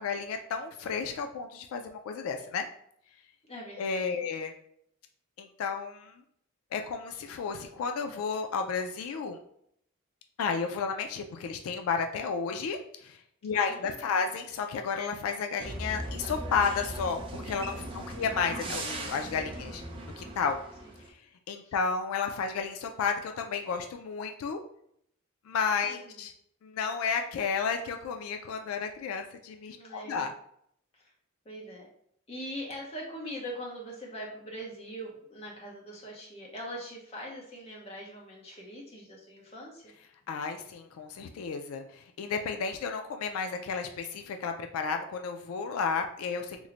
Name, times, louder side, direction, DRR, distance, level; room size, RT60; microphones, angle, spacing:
voice 1, 0.0-2.7 3.8-4.5 5.4-6.1 6.7-9.4 10.4-19.8 20.2-20.6 21.5-24.6 25.5-26.3 26.6-30.3 40.3-46.7, left 5 dB, 85° left, 5 dB, 0.3 m, -32 dB
voice 2, 3.4-4.1 13.5-14.3 17.9-18.3 20.8-20.9 21.6-21.7 25.9-26.2 29.7-30.3 30.9-31.1 31.4-31.9 32.3-39.9, equal, 30° left, -3 dB, 0.8 m, -42 dB
sound 1, 15.6-21.1, right 1 dB, 25° right, 0.4 m, -39 dB
3.0 x 2.1 x 3.8 m, 0.70 s
head